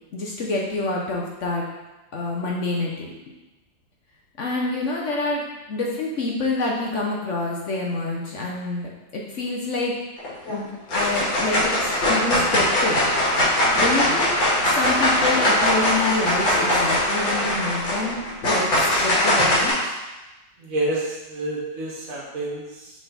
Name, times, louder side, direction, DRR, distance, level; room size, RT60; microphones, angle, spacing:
voice 1, 0.1-1.6 2.1-3.1 4.4-9.9 10.5-13.1 13.7-14.4 14.6-19.9, left 2 dB, 60° left, -2 dB, 0.8 m, -27 dB
sound 1, 10.2-10.6 10.9-19.7, left 1 dB, 80° left, 2.7 m, -21 dB
voice 2, 20.6-22.9, right 1 dB, 45° right, -5 dB, 1.7 m, -28 dB
6.5 x 3.7 x 4.0 m, 1.1 s
omnidirectional pair, 2.1 m